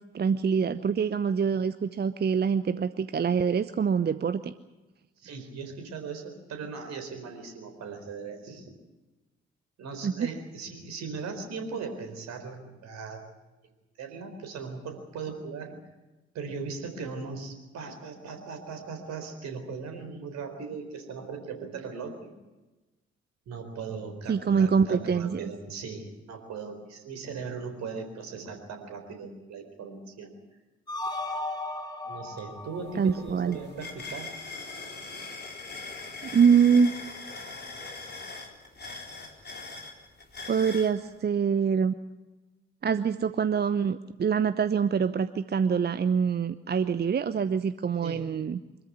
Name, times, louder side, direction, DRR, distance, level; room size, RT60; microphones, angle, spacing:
voice 1, 0.1-4.5 10.0-10.3 24.3-25.4 33.0-33.6 36.3-36.9 40.5-41.9 42.8-48.6, right 6 dB, 35° right, 13 dB, 0.8 m, -25 dB
voice 2, 5.2-8.7 9.8-13.2 14.0-15.7 16.3-22.3 23.5-30.3 32.0-34.3 48.0-48.3, right 5 dB, 60° right, 6 dB, 4.2 m, -38 dB
sound 1, 30.9-34.0, left 2 dB, 15° left, 3.1 m, -36 dB
sound 2, 32.4-32.5 32.8-40.9, left 3 dB, 35° left, 4.3 m, -41 dB
25.0 x 14.0 x 9.7 m, 1.1 s
figure-of-eight pair, 40°, 30 cm